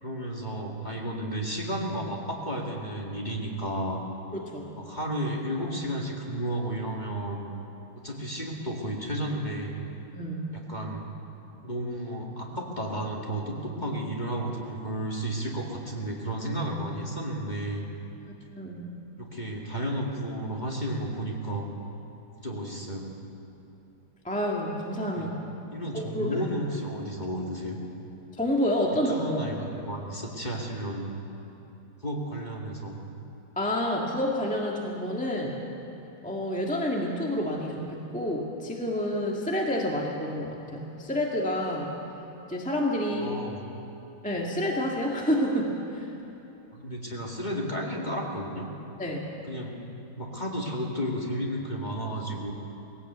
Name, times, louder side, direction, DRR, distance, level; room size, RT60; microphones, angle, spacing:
voice 1, 0.0-4.0 4.8-7.4 8.0-9.8 10.5-11.1 11.6-17.8 19.2-21.7 22.4-23.1 25.2-25.3 25.7-27.8 29.1-31.1 32.0-33.0 43.0-43.6 46.7-48.7 49.5-49.8 50.2-52.5, right 1 dB, 20° left, -1 dB, 2.2 m, -32 dB
voice 2, 4.3-4.8 10.1-10.7 18.1-18.9 24.2-25.4 25.9-26.3 28.4-29.5 33.5-35.6 36.2-41.9 42.5-43.3 44.2-46.1 49.0-49.2, equal, 5° left, -2 dB, 1.6 m, -29 dB
20.0 x 17.0 x 8.0 m, 3.0 s
omnidirectional pair, 2.2 m